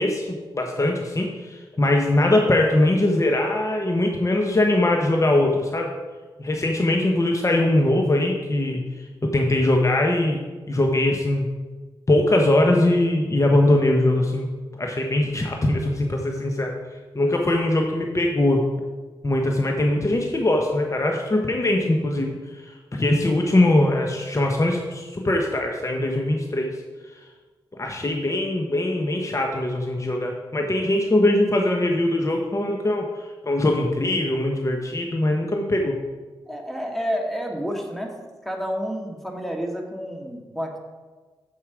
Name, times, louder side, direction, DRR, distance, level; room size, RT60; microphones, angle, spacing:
voice 1, 0.0-5.9 6.4-11.5 12.1-14.5 14.8-16.7 17.1-18.6 19.2-26.7 27.8-35.9, left 1 dB, 30° left, 2 dB, 1.1 m, -21 dB
voice 2, 36.5-38.1 38.5-40.8, equal, ahead, 1 dB, 1.8 m, -29 dB
7.1 x 6.5 x 4.9 m, 1.3 s
supercardioid pair, 40°, 10 cm